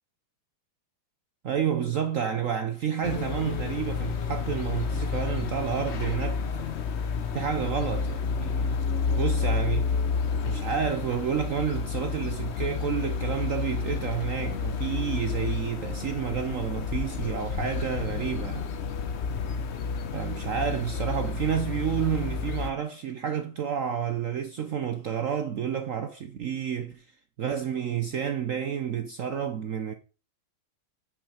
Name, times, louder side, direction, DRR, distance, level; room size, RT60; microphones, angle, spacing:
voice 1, 1.4-6.4 7.3-8.7 9.1-9.9 10.4-18.7 20.1-27.0 27.4-29.9, right 8 dB, 80° right, 0.7 m, -30 dB
sound 1, 3.0-22.7, left 5 dB, 75° left, 0.6 m, -30 dB
9.0 x 5.1 x 4.9 m
omnidirectional pair, 2.3 m